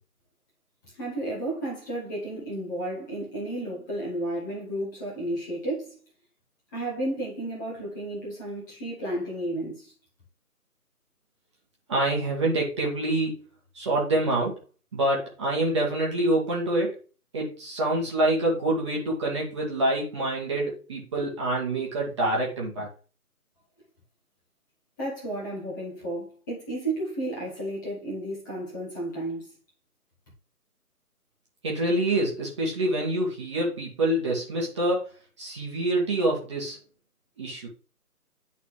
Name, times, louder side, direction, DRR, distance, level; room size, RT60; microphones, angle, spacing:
voice 1, 0.9-6.0 6.7-9.9 25.0-29.5, right 1 dB, 10° left, 1.4 m, -32 dB
voice 2, 11.9-13.4 13.7-14.6 14.9-16.9 17.3-22.9 31.6-35.1 35.4-36.8 37.4-37.7, right 1 dB, 20° right, 1.6 m, -26 dB
11.0 x 4.1 x 3.2 m
figure-of-eight pair, 155°, 47 cm